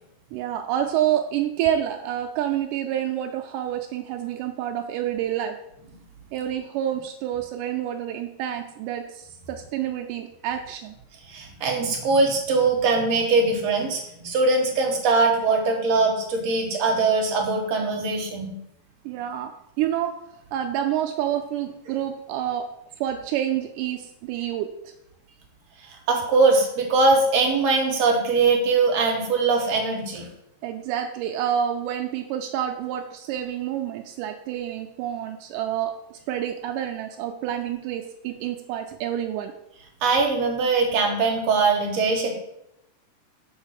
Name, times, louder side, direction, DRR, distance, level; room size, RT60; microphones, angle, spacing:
voice 1, 0.3-5.6 6.3-10.9 19.1-19.5 19.8-20.2 20.5-22.7 23.0-24.9 30.6-39.5, right 10 dB, 85° right, 4 dB, 2.1 m, -28 dB
voice 2, 11.3-18.6 25.8-30.3 40.0-42.4, right 3 dB, 60° right, 1 dB, 2.1 m, -21 dB
6.6 x 4.0 x 6.4 m, 0.81 s
omnidirectional pair, 3.7 m